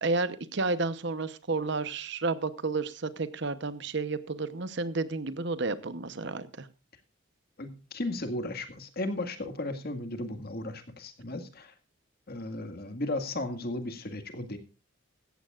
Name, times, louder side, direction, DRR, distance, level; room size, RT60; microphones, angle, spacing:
voice 1, 0.0-6.7, right 3 dB, 60° right, 14 dB, 0.9 m, -31 dB
voice 2, 7.6-11.7 12.3-14.6, left 2 dB, 50° left, 6 dB, 1.9 m, -35 dB
16.5 x 14.0 x 2.5 m, 0.31 s
head